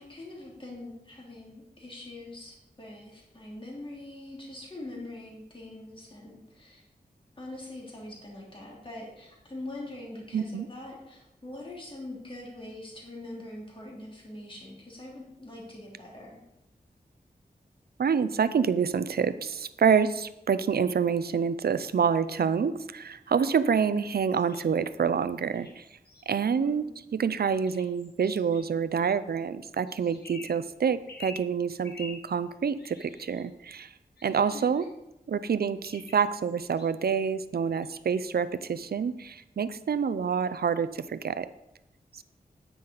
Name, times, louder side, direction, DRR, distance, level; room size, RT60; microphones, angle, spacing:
voice 1, 0.0-6.8 7.4-16.4 26.5-26.9 34.4-34.7, left 1 dB, 30° left, -3 dB, 2.9 m, -43 dB
voice 2, 10.3-10.7 18.0-25.8 26.3-26.8 27.1-33.9 34.2-34.8 35.3-41.5 42.1-42.2, right 6 dB, 75° right, 14 dB, 0.5 m, -27 dB
sound 1, 24.3-24.6 25.5-26.3 27.6-28.6 29.9-30.6 31.1-31.4 31.8-32.2 32.8-33.4 34.2-34.9 35.8-36.9 37.8-38.4, left 3 dB, 80° left, 1.8 m, -48 dB
9.7 x 9.2 x 4.0 m, 0.88 s
wide cardioid pair, 105°, 16 cm